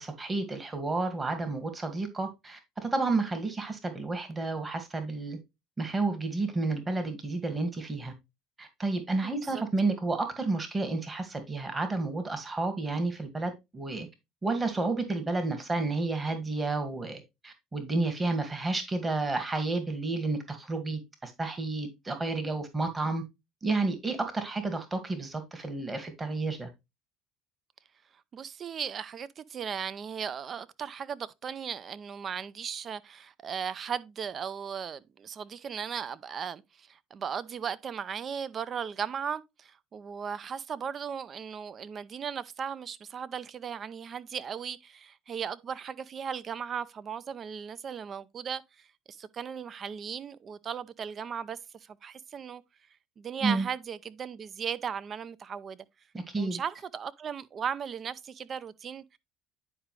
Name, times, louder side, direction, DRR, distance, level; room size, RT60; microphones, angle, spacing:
voice 1, 0.0-5.4 5.8-8.1 8.6-14.1 14.4-23.2 23.6-26.7 53.4-53.7 56.1-56.6, right 3 dB, 20° right, 2.0 m, -31 dB
voice 2, 9.2-9.6 28.3-52.6 53.2-55.8 56.4-59.2, right 7 dB, 40° right, 0.6 m, -37 dB
9.9 x 4.9 x 3.2 m
supercardioid pair, 90°, 0 cm